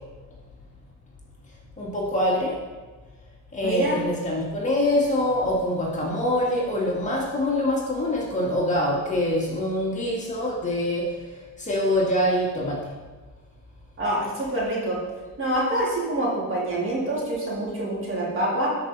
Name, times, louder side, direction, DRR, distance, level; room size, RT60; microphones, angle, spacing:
voice 1, 1.8-2.6 3.5-11.2 11.6-13.0, left 1 dB, 20° left, -5 dB, 1.8 m, -24 dB
voice 2, 3.6-4.0 14.0-15.0 15.4-18.7, right 1 dB, 35° right, -5 dB, 3.1 m, -26 dB
12.5 x 5.4 x 4.0 m, 1.3 s
cardioid pair, 130°, 35 cm